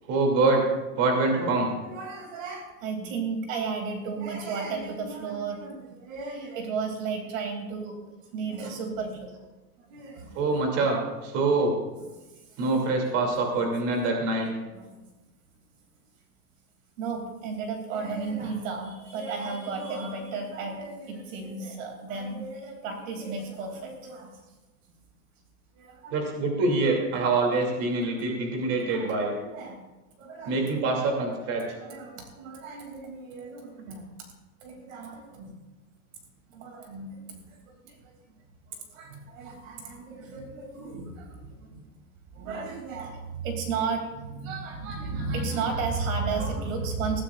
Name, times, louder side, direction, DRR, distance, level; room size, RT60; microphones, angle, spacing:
voice 1, 0.1-0.7 1.0-1.7 10.3-11.8 12.6-14.5 26.1-29.4 30.4-31.6, right 3 dB, 30° right, 0 dB, 2.7 m, -25 dB
voice 2, 1.8-8.0 8.3-9.5 9.8-10.6 12.2-12.6 14.7-15.0 17.0-24.4 25.7-26.2 27.1-27.2 28.0-28.1 28.9-29.8 30.2-30.7 31.7-34.1 34.6-35.6 36.5-38.1 38.7-41.8 42.3-47.2, right 4 dB, 55° right, 3 dB, 2.7 m, -34 dB
20.5 x 15.0 x 2.4 m, 1.1 s
supercardioid pair, 165°, 46 cm